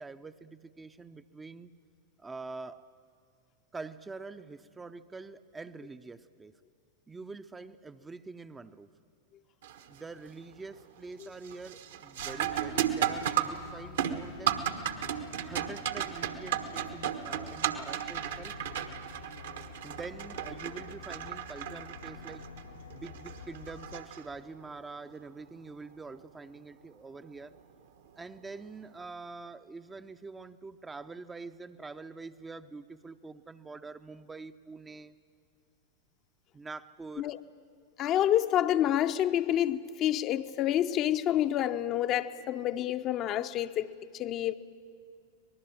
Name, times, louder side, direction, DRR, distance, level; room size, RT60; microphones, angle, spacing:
voice 1, 0.0-1.7 2.2-2.9 3.7-6.5 7.1-8.9 9.9-14.6 15.4-18.6 19.8-22.5 22.9-27.6 28.2-35.2 36.5-37.3, right 3 dB, 15° right, 0.6 m, -45 dB
sound 1, 9.6-10.0 10.4-10.9 11.2-24.7 27.2-27.3 28.1-28.4, right 10 dB, 60° right, 1.3 m, -35 dB
sound 2, 12.2-24.0, left 6 dB, 75° left, 1.8 m, -49 dB
voice 2, 38.0-44.5, left 11 dB, 35° left, 0.7 m, -28 dB
25.0 x 19.5 x 9.1 m
figure-of-eight pair, 90°, 0 cm